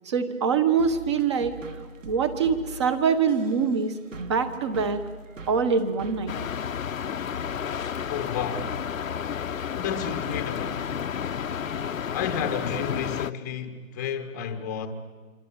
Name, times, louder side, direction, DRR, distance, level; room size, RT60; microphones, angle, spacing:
voice 1, 0.0-1.6 2.0-5.0 5.5-6.3, right 6 dB, 20° right, 1.2 m, -24 dB
sound 1, 0.8-7.4, right 2 dB, 65° right, 3.3 m, -43 dB
sound 2, 6.3-13.3, left 8 dB, 70° left, 0.9 m, -31 dB
voice 2, 8.1-8.8 9.7-10.9 12.1-14.9, left 7 dB, 15° left, 1.1 m, -31 dB
26.0 x 25.5 x 8.8 m
hypercardioid pair, 165°, 41 cm